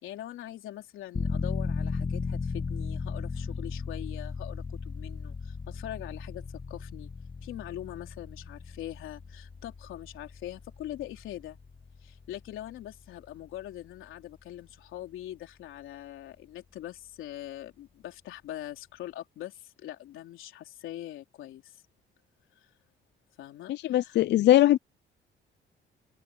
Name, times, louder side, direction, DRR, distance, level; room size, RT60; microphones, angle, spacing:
voice 1, 0.0-7.1 7.4-11.6 12.0-21.8 22.6-22.7 23.4-24.2, left 13 dB, 85° left, 3.6 m, -42 dB
sound 1, 1.1-13.7 14.0-14.1, left 4 dB, 25° left, 1.4 m, -36 dB
voice 2, 23.7-24.8, left 13 dB, 60° left, 0.4 m, -21 dB
cardioid pair, 90°, 20 cm